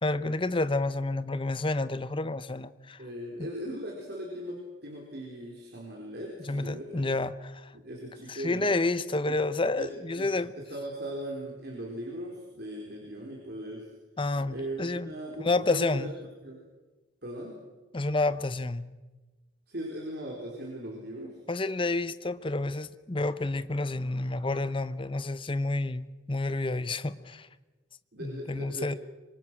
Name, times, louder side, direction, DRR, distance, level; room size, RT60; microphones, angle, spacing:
voice 1, 0.0-3.0 3.4-3.5 6.4-7.7 8.3-10.5 14.2-15.1 15.4-16.1 17.9-18.9 21.5-27.5 28.2-28.9, left 2 dB, 25° left, 0.8 m, -29 dB
voice 2, 3.0-7.1 7.7-8.7 9.3-9.4 9.8-13.9 14.5-16.1 16.4-16.6 17.2-17.6 19.7-21.4 28.1-28.9, right 1 dB, 55° right, 4.3 m, -39 dB
26.5 x 24.0 x 6.2 m
head